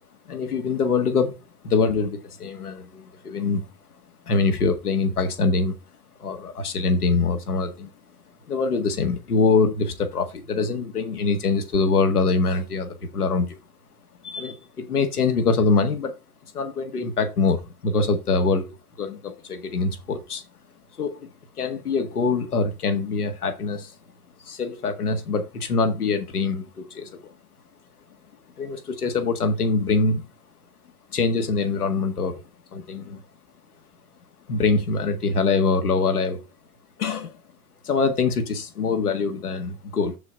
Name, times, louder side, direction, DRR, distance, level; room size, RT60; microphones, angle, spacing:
voice 1, 0.3-1.4 1.6-3.6 4.3-5.7 6.2-7.9 8.5-13.6 14.2-16.1 16.5-18.7 19.0-20.4 21.0-21.3 21.6-23.9 24.5-27.3 28.6-30.3 31.1-32.4 32.7-33.2 34.5-36.4 37.0-37.3 37.8-40.1, left 4 dB, 85° left, 1.9 m, -24 dB
7.4 x 6.3 x 4.7 m
hypercardioid pair, 100°, 44 cm